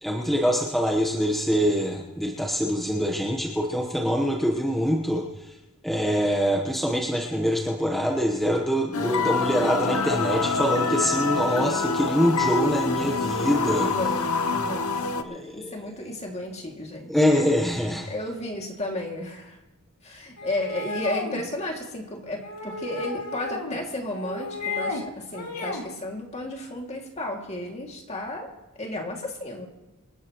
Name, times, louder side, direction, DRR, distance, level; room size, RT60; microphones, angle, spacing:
voice 1, 0.0-5.5 5.8-13.9 15.2-15.7 17.1-18.1, equal, ahead, 0 dB, 1.1 m, -24 dB
sound 1, 8.9-15.2, left 4 dB, 70° left, 0.9 m, -26 dB
voice 2, 13.9-14.9 15.1-17.1 18.1-19.6 20.0-28.5 28.8-29.7, left 1 dB, 30° left, 1 dB, 2.4 m, -33 dB
sound 2, 20.4-21.4 22.4-23.8 24.1-25.0 25.3-25.9, left 2 dB, 85° left, 2.2 m, -33 dB
27.0 x 11.5 x 3.1 m, 1.0 s
head